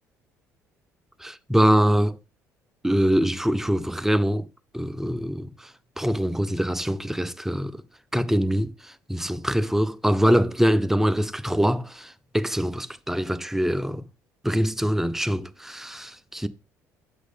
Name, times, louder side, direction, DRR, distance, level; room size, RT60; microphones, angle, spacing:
voice 1, 1.2-2.2 2.8-4.5 4.7-5.5 6.0-7.7 8.1-14.0 14.4-16.5, equal, 5° right, 0.5 m, -23 dB
6.4 x 6.1 x 3.5 m
hypercardioid pair, 55°, 8 cm